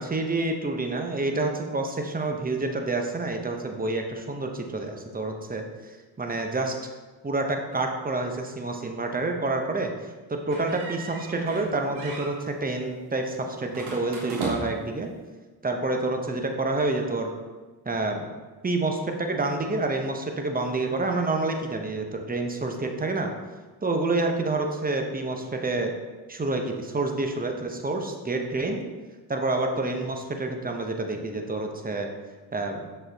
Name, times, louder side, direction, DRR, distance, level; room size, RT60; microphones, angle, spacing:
voice 1, 0.0-5.6 6.2-6.8 7.2-9.9 10.3-15.1 15.6-17.3 17.8-18.3 18.6-23.3 23.8-25.9 26.3-28.8 29.3-32.1 32.5-32.9, right 2 dB, 20° right, 3 dB, 1.0 m, -28 dB
sound 1, 10.5-11.7 12.0-12.3 13.7-14.9, right 3 dB, 80° right, 1.3 m, -35 dB
6.1 x 4.6 x 3.5 m, 1.3 s
hypercardioid pair, 45°, 47 cm